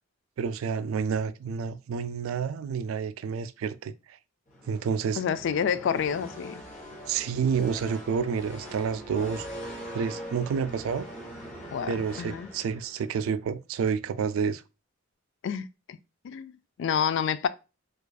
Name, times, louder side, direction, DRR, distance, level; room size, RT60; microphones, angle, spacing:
voice 1, 0.4-4.2 4.7-5.2 7.1-9.5 9.9-11.1 11.9-14.6, right 6 dB, 85° right, 0.3 m, -29 dB
sound 1, 4.5-13.1, equal, 40° left, 1.1 m, -42 dB
voice 2, 5.2-6.6 11.7-12.5 15.4-16.0 16.2-17.5, left 7 dB, 60° left, 0.3 m, -29 dB
4.6 x 2.4 x 2.3 m
head